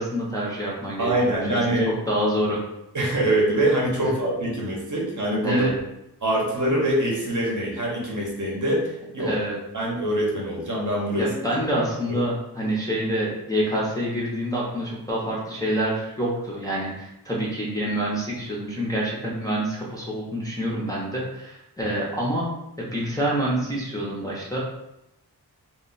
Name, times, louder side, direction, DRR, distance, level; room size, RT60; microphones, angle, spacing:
voice 1, 0.0-1.8 2.1-2.6 4.0-4.1 5.4-5.7 9.2-9.6 11.1-22.5 22.8-24.6, right 1 dB, 10° left, -6 dB, 0.5 m, -27 dB
voice 2, 1.0-1.9 2.9-5.7 6.2-9.3 9.7-11.3 12.1-12.2 21.8-22.0, right 1 dB, 50° right, -3 dB, 0.8 m, -24 dB
2.1 x 2.1 x 3.8 m, 0.86 s
wide cardioid pair, 130°, 40 cm